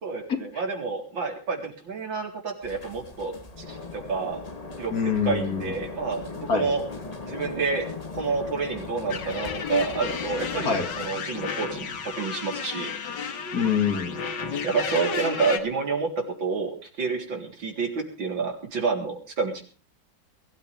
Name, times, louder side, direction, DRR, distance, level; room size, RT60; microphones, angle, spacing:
voice 1, 0.0-4.4 4.8-4.9 5.2-6.8 7.2-7.8 8.1-12.9 14.6-19.6, right 4 dB, 90° right, 3 dB, 4.4 m, -29 dB
sound 1, 2.6-11.1, left 4 dB, 20° left, 1.3 m, -38 dB
voice 2, 4.9-5.7 6.5-6.7 10.6-10.9 13.5-14.2, left 6 dB, 50° left, 6 dB, 2.7 m, -25 dB
sound 2, 9.1-15.6, left 6 dB, 70° left, 2.1 m, -33 dB
22.5 x 13.0 x 3.4 m, 0.39 s
omnidirectional pair, 2.0 m